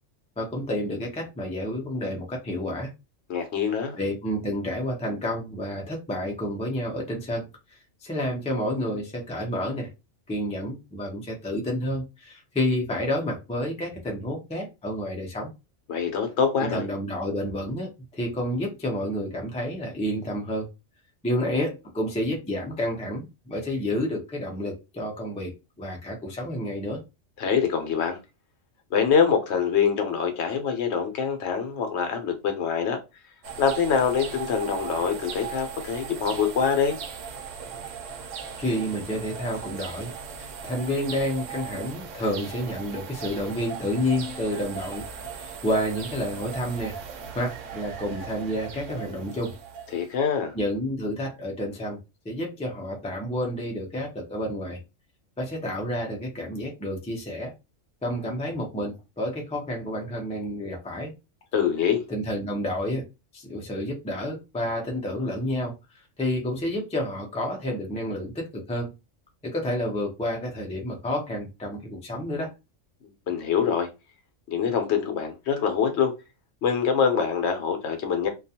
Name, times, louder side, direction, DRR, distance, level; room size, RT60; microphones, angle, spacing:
voice 1, 0.4-2.9 4.0-7.5 7.7-9.9 10.3-15.5 16.6-20.7 21.2-27.0 38.6-40.1 40.4-47.0 47.3-49.6 50.5-52.0 52.2-54.8 55.4-57.5 58.0-61.1 62.1-63.0 63.3-68.9 69.4-72.5, equal, 10° left, 0.3 m, -30 dB
voice 2, 3.3-4.0 15.9-16.8 27.4-28.2 28.9-33.0 33.6-37.0 49.9-50.5 61.5-62.0 73.3-73.9 74.5-76.1 76.6-78.3, left 7 dB, 65° left, 0.9 m, -24 dB
sound 1, 33.4-50.2, right 6 dB, 80° right, 0.9 m, -38 dB
2.3 x 2.2 x 2.7 m
omnidirectional pair, 1.3 m